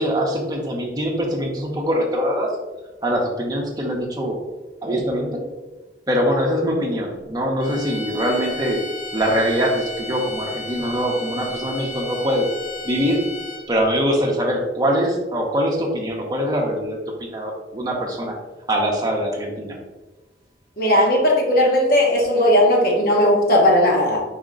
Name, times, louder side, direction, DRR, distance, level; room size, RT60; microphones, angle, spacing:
voice 1, 0.0-2.5 3.0-4.4 4.8-5.4 6.1-8.8 9.1-12.5 12.8-13.2 13.7-18.3 18.7-19.8, equal, 20° right, -1 dB, 0.8 m, -23 dB
sound 1, 7.6-13.8, left 3 dB, 30° left, 1.1 m, -34 dB
voice 2, 20.8-24.2, left 1 dB, 55° left, -1 dB, 1.1 m, -17 dB
4.9 x 2.9 x 3.7 m, 1.1 s
head